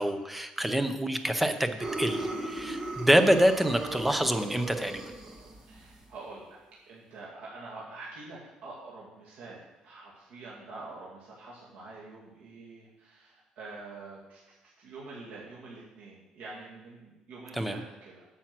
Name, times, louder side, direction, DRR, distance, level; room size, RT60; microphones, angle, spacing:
voice 1, 0.0-5.0 17.5-17.8, equal, 5° right, 8 dB, 0.6 m, -26 dB
sound 1, 1.8-6.0, right 2 dB, 30° right, 1.5 m, -37 dB
voice 2, 5.7-6.6 6.9-18.3, right 3 dB, 75° right, -6 dB, 2.4 m, -46 dB
8.9 x 7.1 x 6.0 m, 1.0 s
cardioid pair, 160°, 2 cm